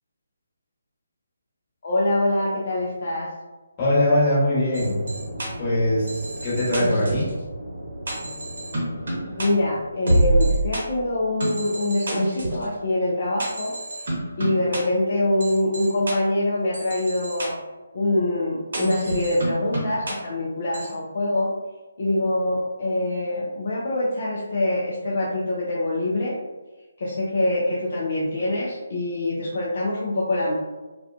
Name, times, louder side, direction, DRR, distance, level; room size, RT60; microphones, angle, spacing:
voice 1, 1.8-3.3 9.4-13.7 14.4-17.5 17.9-21.5 22.0-26.3 27.0-30.5, left 1 dB, 50° left, -6 dB, 0.5 m, -24 dB
voice 2, 3.8-5.0 5.6-7.3, left 1 dB, 25° left, -9 dB, 1.2 m, -21 dB
sound 1, 4.7-10.8 11.4-12.7 13.4-14.8 15.4-16.1 16.7-17.5 18.7-20.1 20.7-20.9, right 1 dB, 60° right, 0.8 m, -27 dB
2.4 x 2.3 x 2.3 m, 1.2 s
figure-of-eight pair, 145°, 0 cm